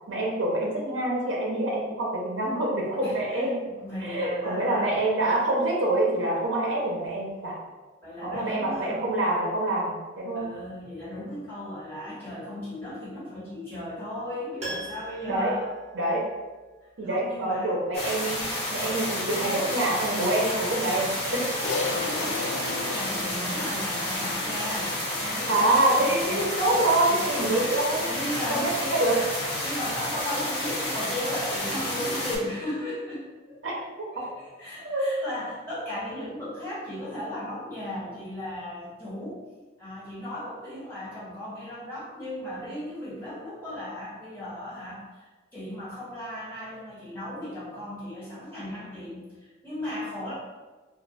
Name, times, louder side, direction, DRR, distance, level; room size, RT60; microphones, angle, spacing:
voice 1, 0.1-3.6 4.0-7.6 8.2-10.5 15.3-15.5 15.9-16.2 17.0-18.5 18.7-21.9 25.5-28.1 28.3-29.2 33.6-33.7 34.8-35.1, right 1 dB, 80° right, -3 dB, 0.6 m, -26 dB
voice 2, 3.0-5.0 8.0-9.3 10.3-15.7 17.0-17.8 21.8-24.9 25.2-25.6 26.0-26.6 27.1-27.2 28.0-29.3 29.6-33.6 34.1-39.4 39.8-50.3, left 1 dB, 10° left, -11 dB, 1.2 m, -36 dB
Piano, 14.6-16.7 17.0-17.1, right 1 dB, 35° right, 0.8 m, -40 dB
sound 1, 17.9-32.4, left 1 dB, 35° left, 0.8 m, -30 dB
Crash cymbal, 21.6-26.2, left 4 dB, 75° left, 0.3 m, -35 dB
2.4 x 2.2 x 4.0 m, 1.3 s
head